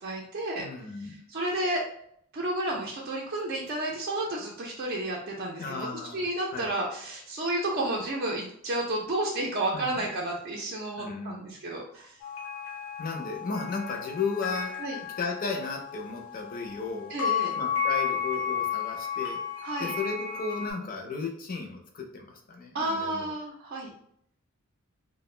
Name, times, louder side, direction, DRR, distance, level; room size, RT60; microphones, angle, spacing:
voice 1, 0.0-0.6 1.0-1.8 2.3-5.9 6.1-12.2 14.8-15.0 17.1-17.6 19.6-19.9 22.7-23.9, right 1 dB, 50° right, -2 dB, 0.4 m, -31 dB
voice 2, 0.6-1.2 5.6-6.3 6.5-6.7 9.7-10.1 11.0-11.4 13.0-14.7 15.2-17.1 17.6-19.4 19.8-23.3, left 4 dB, 40° left, 2 dB, 0.5 m, -34 dB
sound 1, 12.2-20.7, left 8 dB, 85° left, 0.7 m, -33 dB
2.4 x 2.0 x 3.1 m, 0.69 s
head